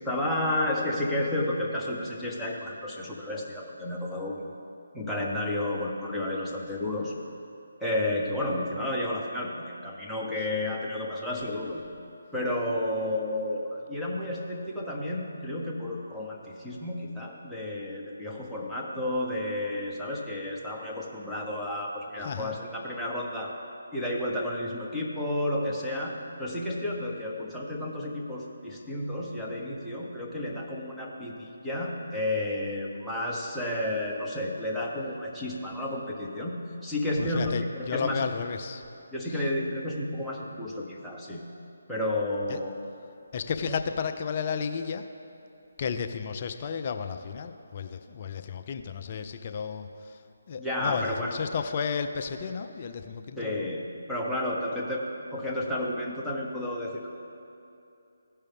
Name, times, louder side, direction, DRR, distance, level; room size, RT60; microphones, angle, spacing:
voice 1, 0.0-4.5 4.9-7.2 7.8-11.8 12.3-23.5 23.9-26.1 26.4-36.6 36.8-38.3 39.1-41.4 41.9-42.8 43.6-43.8 50.6-51.3 53.4-57.1, left 1 dB, ahead, -6 dB, 1.0 m, -31 dB
voice 2, 22.2-22.6 37.2-38.8 39.3-39.4 42.5-42.6 43.3-45.1 45.8-50.2 50.5-53.8, left 6 dB, 40° left, 7 dB, 0.5 m, -33 dB
15.5 x 5.5 x 3.5 m, 2.7 s
figure-of-eight pair, 155°, 0 cm